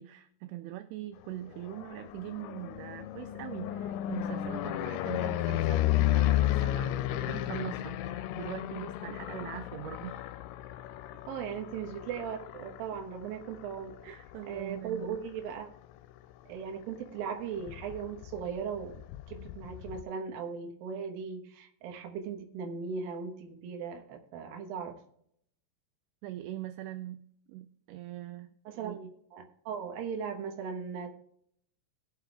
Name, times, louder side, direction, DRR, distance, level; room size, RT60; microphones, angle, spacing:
voice 1, 0.0-10.3 14.0-15.2 26.2-29.1, right 14 dB, 85° right, 10 dB, 2.5 m, -42 dB
sound 1, 1.4-15.4 15.9-16.3 16.6-16.7 17.0-20.0, left 14 dB, 85° left, 2.8 m, -33 dB
voice 2, 11.3-14.0 14.5-15.7 16.5-19.0 19.3-25.0 28.7-31.1, right 6 dB, 70° right, 3 dB, 2.5 m, -38 dB
21.0 x 7.1 x 2.3 m, 0.70 s
omnidirectional pair, 5.3 m